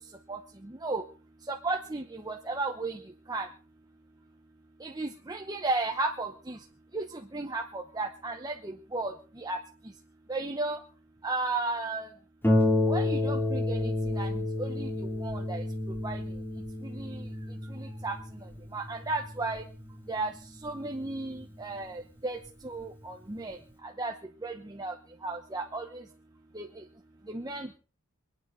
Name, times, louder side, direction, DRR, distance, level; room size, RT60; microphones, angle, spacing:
voice 1, 1.5-3.0 3.3-3.5 4.8-6.6 6.9-7.1 7.3-9.1 9.4-9.6 10.3-10.8 11.2-12.1 12.9-14.9 15.2-15.6 16.0-16.2 16.9-17.2 17.7-18.2 18.7-19.6 20.1-20.3 20.6-22.4 22.6-23.6 23.8-24.1 24.4-24.9 25.2-26.0 26.5-26.7 27.3-27.8, right 2 dB, 15° right, 3 dB, 0.9 m, -34 dB
Harp, 12.4-21.6 22.5-22.6 23.0-23.1, left 2 dB, 10° left, 2.7 m, -30 dB
27.0 x 9.2 x 3.8 m, 0.38 s
head